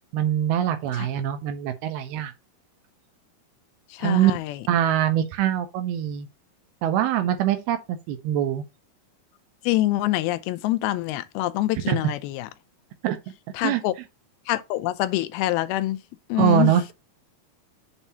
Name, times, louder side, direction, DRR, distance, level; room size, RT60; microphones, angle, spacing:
voice 1, 0.1-2.3 4.0-4.3 4.7-6.3 6.8-8.6 11.9-12.0 13.0-13.2 13.6-13.8 16.4-16.9, right 11 dB, 85° right, 2.6 m, -23 dB
voice 2, 3.9-4.6 9.6-12.5 13.5-13.9 14.5-16.0 16.3-16.7, left 16 dB, 85° left, 2.5 m, -25 dB
7.1 x 2.8 x 5.4 m
omnidirectional pair, 4.5 m